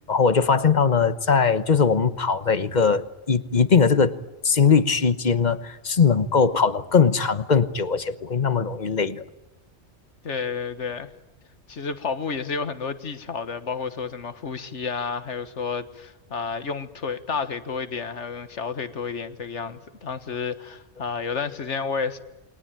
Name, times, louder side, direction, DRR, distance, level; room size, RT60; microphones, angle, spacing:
voice 1, 0.1-4.2 4.4-9.2, left 5 dB, 40° left, 1.2 m, -20 dB
voice 2, 10.2-11.1 11.7-22.2, left 5 dB, 80° left, 1.8 m, -31 dB
29.0 x 22.5 x 9.0 m
omnidirectional pair, 1.2 m